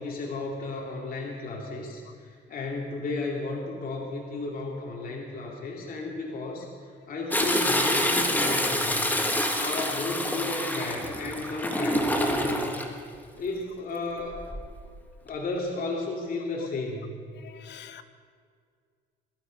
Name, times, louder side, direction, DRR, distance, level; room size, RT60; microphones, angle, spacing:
voice 1, 0.0-6.7 7.1-9.1 9.6-12.8 13.3-14.4 15.2-17.3, left 3 dB, 50° left, -1 dB, 2.6 m, -33 dB
Toilet flush, 7.3-12.9 14.3-14.8 15.3-15.4, left 1 dB, 10° left, 1.6 m, -27 dB
voice 2, 17.4-18.0, left 10 dB, 70° left, 10 dB, 1.1 m, -45 dB
21.0 x 12.0 x 5.2 m, 2.1 s
cardioid pair, 105°, 19 cm